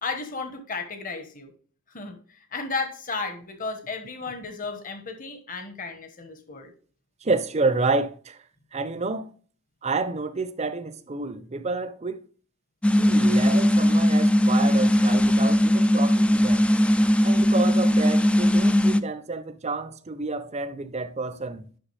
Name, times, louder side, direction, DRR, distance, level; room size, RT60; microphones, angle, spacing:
voice 1, 0.0-1.5 1.9-2.2 2.5-6.7, left 4 dB, 40° left, 1.2 m, -33 dB
voice 2, 7.2-8.4 8.7-9.3 9.8-12.2 13.0-16.7 17.2-21.7, right 3 dB, 30° right, 0.6 m, -29 dB
sound 1, 12.8-19.0, equal, 5° left, 0.3 m, -19 dB
10.0 x 5.9 x 3.3 m
head